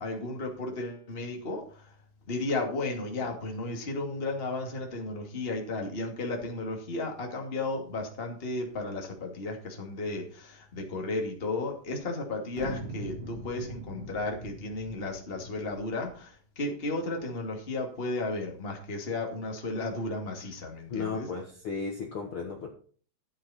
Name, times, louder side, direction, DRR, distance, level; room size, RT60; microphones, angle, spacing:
voice 1, 0.0-1.8 2.3-21.3, left 2 dB, 20° left, 1 dB, 2.1 m, -34 dB
sound 1, 12.5-16.2, right 1 dB, 50° right, 3.8 m, -42 dB
voice 2, 20.9-22.7, left 5 dB, 45° left, 1 dB, 2.1 m, -35 dB
13.0 x 8.6 x 4.3 m, 0.42 s
omnidirectional pair, 3.8 m